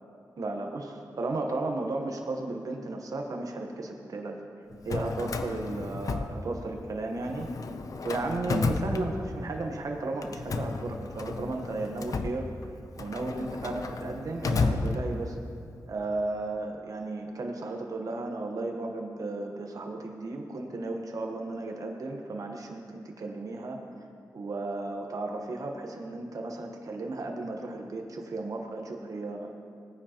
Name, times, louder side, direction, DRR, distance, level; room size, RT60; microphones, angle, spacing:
voice 1, 0.4-0.8 1.2-4.4 4.8-7.5 8.0-12.5 13.0-15.4 15.9-23.8 24.3-29.5, right 2 dB, 55° right, 2 dB, 1.1 m, -34 dB
Drawer open or close, 4.7-6.9 7.2-9.6 10.2-15.5, left 3 dB, 55° left, 0.6 m, -33 dB
18.0 x 9.8 x 3.0 m, 2.4 s
wide cardioid pair, 105°, 7 cm